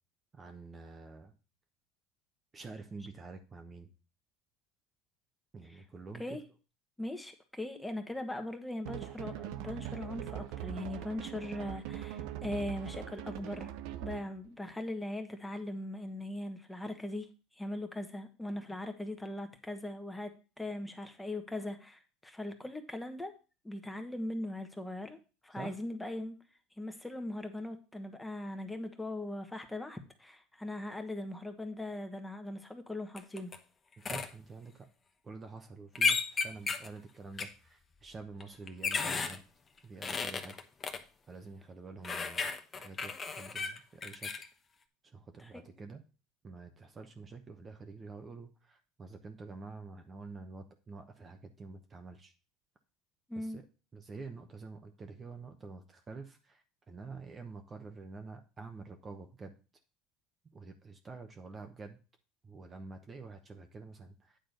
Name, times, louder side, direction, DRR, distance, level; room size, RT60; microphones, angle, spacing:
voice 1, 0.3-1.3 2.5-3.9 5.5-6.4 25.5-25.8 34.0-34.9 35.2-39.4 39.8-40.5 41.3-44.3 45.0-46.0 46.4-52.3 53.3-53.6 53.9-59.5 60.5-62.0 62.4-64.4, right 4 dB, 25° right, 6 dB, 1.0 m, -48 dB
voice 2, 7.0-13.7 14.0-17.3 17.6-23.3 23.6-26.3 26.8-33.5 45.4-45.6 53.3-53.6, left 1 dB, 10° left, 6 dB, 1.4 m, -40 dB
sound 1, 8.9-14.4, right 12 dB, 70° right, 0.7 m, -41 dB
sound 2, 33.2-33.6 34.1-34.3 36.0-36.9 37.4-37.5 38.4-39.4 40.0-41.0 42.0-44.5, left 4 dB, 30° left, 1.0 m, -33 dB
9.0 x 3.8 x 6.5 m, 0.33 s
supercardioid pair, 95°, 0 cm